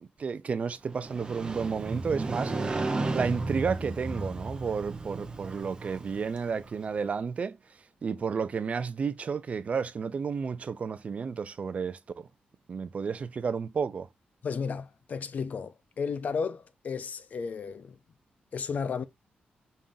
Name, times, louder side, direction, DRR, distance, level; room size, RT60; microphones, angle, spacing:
voice 1, 0.0-7.6 8.0-12.3 12.7-14.1, right 5 dB, 45° right, 0.5 m, -32 dB
Motorcycle, 0.9-6.8, right 3 dB, 25° right, 0.8 m, -34 dB
voice 2, 14.4-18.0 18.5-19.0, left 5 dB, 50° left, 0.6 m, -33 dB
5.4 x 3.7 x 2.6 m
wide cardioid pair, 120°, 3 cm